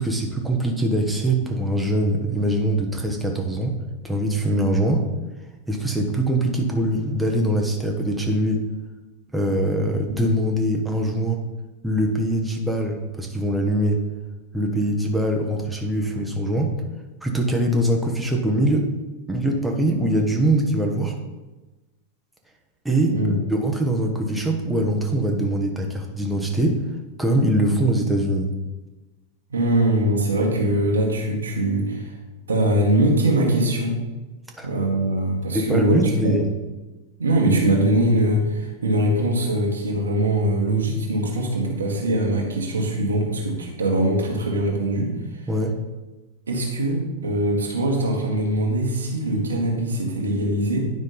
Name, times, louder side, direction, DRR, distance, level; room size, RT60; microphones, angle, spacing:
voice 1, 0.0-3.7 4.0-5.1 5.7-8.7 9.3-11.4 11.8-14.1 14.5-16.7 17.2-18.9 19.3-21.2 22.8-23.2 23.5-26.8 27.2-28.5 34.5-34.7 35.5-36.5 45.5-45.7, right 1 dB, 5° right, 1 dB, 1.0 m, -22 dB
voice 2, 23.0-23.4 29.5-32.1 32.5-34.0 34.6-36.4 37.2-45.1 46.5-50.8, right 1 dB, 75° right, 0 dB, 1.6 m, -22 dB
9.8 x 5.2 x 3.9 m, 1.1 s
figure-of-eight pair, 90°, 0 cm